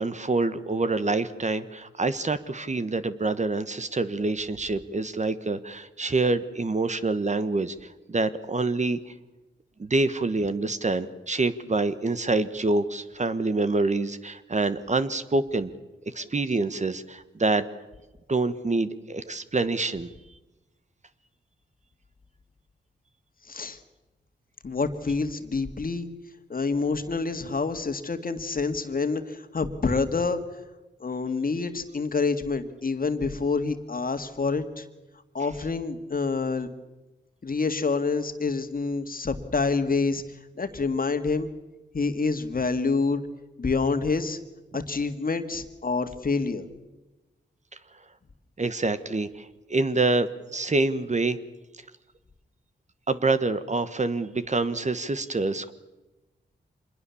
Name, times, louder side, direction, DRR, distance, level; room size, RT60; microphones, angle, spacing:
voice 1, 0.0-9.0 9.8-15.7 16.1-17.6 18.3-20.1 48.6-51.4 53.1-55.7, right 3 dB, 40° right, 12 dB, 1.3 m, -26 dB
voice 2, 23.5-23.8 24.6-26.1 26.5-30.4 31.0-34.9 35.3-36.7 37.4-40.2 40.6-41.5 41.9-43.2 43.6-44.4 44.7-46.7, left 4 dB, 50° left, 8 dB, 1.9 m, -27 dB
25.5 x 21.5 x 7.1 m, 1.1 s
cardioid pair, 65°, 19 cm